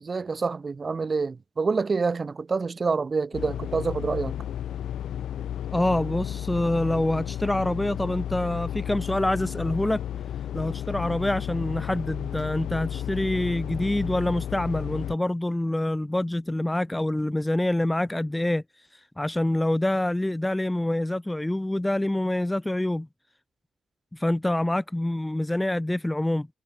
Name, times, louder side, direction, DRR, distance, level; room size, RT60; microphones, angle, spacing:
voice 1, 0.0-4.3, right 4 dB, 25° right, 2.1 m, -27 dB
sound 1, 3.3-15.2, left 10 dB, 65° left, 1.2 m, -33 dB
voice 2, 5.7-10.0 10.5-18.6 18.9-23.1 24.1-26.5, left 1 dB, 5° left, 1.3 m, -26 dB
cardioid pair, 155°, 0 cm